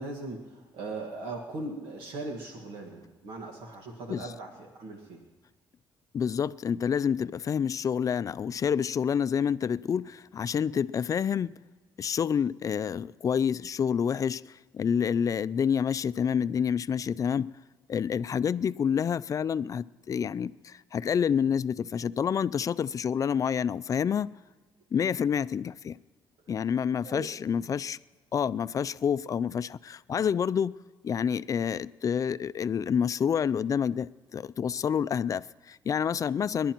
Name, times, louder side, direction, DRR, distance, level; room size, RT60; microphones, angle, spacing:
voice 1, 0.0-5.2 27.0-27.3, right 2 dB, 90° right, 1.7 m, -39 dB
voice 2, 6.1-11.5 12.0-17.5 17.9-24.3 24.9-26.0 26.5-28.0 28.3-30.7 31.0-36.7, left 7 dB, 40° left, 0.4 m, -28 dB
28.5 x 11.0 x 3.0 m
cardioid pair, 85°, 8 cm